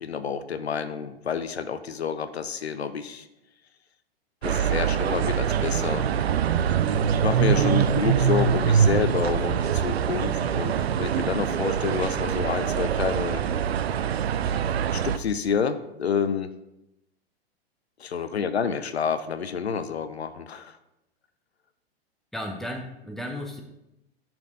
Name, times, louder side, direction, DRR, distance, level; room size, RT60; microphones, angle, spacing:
voice 1, 0.0-3.3 4.4-6.0 7.2-13.4 14.9-16.5 18.0-20.8, left 6 dB, 80° left, 12 dB, 0.6 m, -28 dB
sound 1, 4.4-15.2, right 8 dB, 75° right, 0.5 m, -24 dB
voice 2, 7.3-7.8 22.3-23.6, equal, ahead, 2 dB, 0.9 m, -35 dB
9.7 x 4.4 x 3.9 m, 0.89 s
figure-of-eight pair, 105°, 32 cm